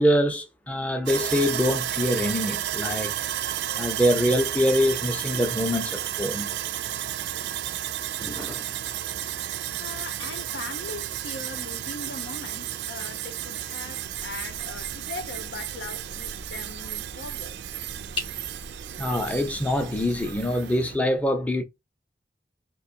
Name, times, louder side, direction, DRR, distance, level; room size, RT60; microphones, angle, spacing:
voice 1, 0.0-3.1 3.7-6.5 8.2-8.7 19.0-21.6, equal, 10° left, 0.6 m, -24 dB
Sawing, 1.1-21.0, right 11 dB, 65° right, 0.3 m, -32 dB
voice 2, 9.8-17.6, left 3 dB, 85° left, 0.7 m, -40 dB
sound 1, 14.0-20.4, left 1 dB, 30° left, 1.6 m, -42 dB
4.0 x 2.6 x 2.5 m
head